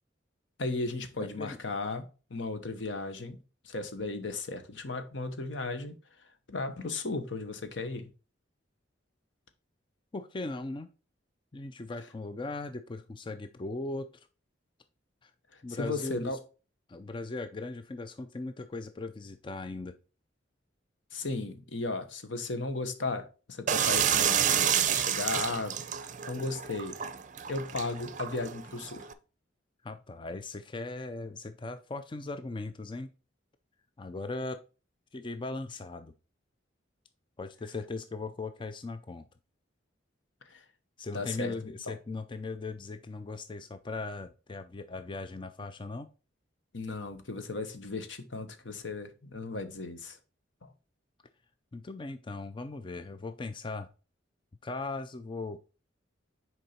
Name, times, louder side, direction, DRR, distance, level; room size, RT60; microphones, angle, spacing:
voice 1, 0.6-3.4 3.6-6.0 6.5-8.1 15.5-16.4 21.1-27.0 27.5-29.1 40.4-40.6 41.1-41.9 46.7-50.2 50.6-50.7, left 3 dB, 70° left, 1.0 m, -36 dB
voice 2, 10.1-10.9 11.5-14.3 15.2-15.3 15.6-16.4 16.9-20.0 29.8-33.1 34.0-34.6 35.1-36.1 37.4-39.3 41.0-46.1 51.7-53.9 54.6-55.6, left 3 dB, 25° left, 0.4 m, -38 dB
sound 1, 23.7-29.1, right 9 dB, 45° right, 0.6 m, -29 dB
6.6 x 4.6 x 4.3 m
head